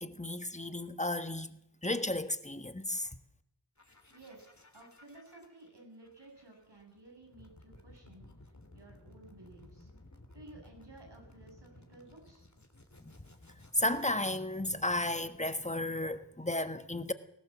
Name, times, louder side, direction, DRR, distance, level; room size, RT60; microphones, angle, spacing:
voice 1, 0.0-3.1 13.0-13.1 13.7-17.1, left 1 dB, 15° left, 1.4 m, -34 dB
sound 1, 3.8-14.1, left 1 dB, 40° left, 3.3 m, -57 dB
voice 2, 4.1-9.9 10.3-12.5, right 2 dB, 75° right, 7.8 m, -55 dB
20.5 x 17.5 x 7.6 m
wide cardioid pair, 55°, 42 cm